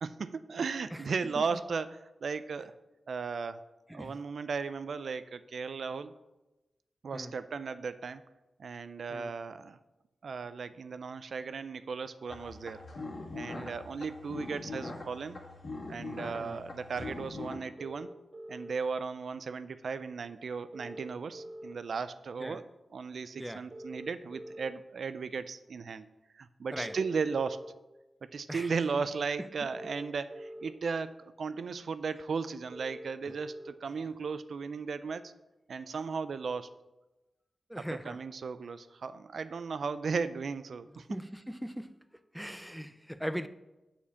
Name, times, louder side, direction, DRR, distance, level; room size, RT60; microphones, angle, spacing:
voice 1, 0.0-2.7 3.1-3.6 3.9-6.1 7.0-8.2 8.6-9.8 10.2-12.8 13.3-15.4 15.9-18.2 18.5-22.7 22.9-26.1 26.3-27.6 28.3-35.3 35.7-36.7 37.9-41.1, right 5 dB, 75° right, 0.3 m, -36 dB
voice 2, 0.9-1.4 3.9-4.2 7.1-7.3 9.1-9.3 13.5-13.7 16.4-16.6 22.4-22.6 23.4-23.7 26.7-27.0 28.5-28.7 37.7-38.2 40.9-42.0 42.3-43.5, equal, ahead, 0.4 m, -40 dB
sound 1, 12.3-17.5, left 2 dB, 60° left, 1.8 m, -42 dB
sound 2, 17.8-18.7 20.7-21.7 23.7-24.7 26.7-27.7 29.7-30.7 32.7-33.7, right 1 dB, 35° right, 0.9 m, -45 dB
7.3 x 4.4 x 6.9 m
cardioid pair, 75°, 0 cm